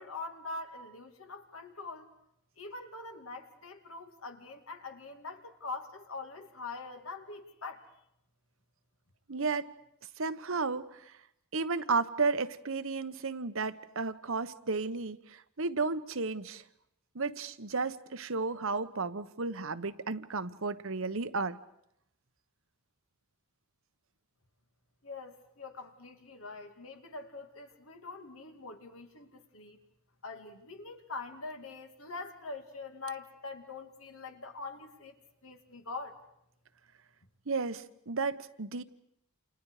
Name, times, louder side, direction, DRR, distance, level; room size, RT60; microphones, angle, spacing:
voice 1, 0.0-2.1 2.6-7.8 25.0-29.8 30.2-35.2 35.4-36.2, left 3 dB, 65° left, 5 dB, 2.8 m, -43 dB
voice 2, 9.3-9.7 10.2-11.1 11.5-16.6 17.1-21.6 37.5-38.8, right 4 dB, 65° right, 12 dB, 1.1 m, -33 dB
29.5 x 28.5 x 5.0 m, 0.76 s
head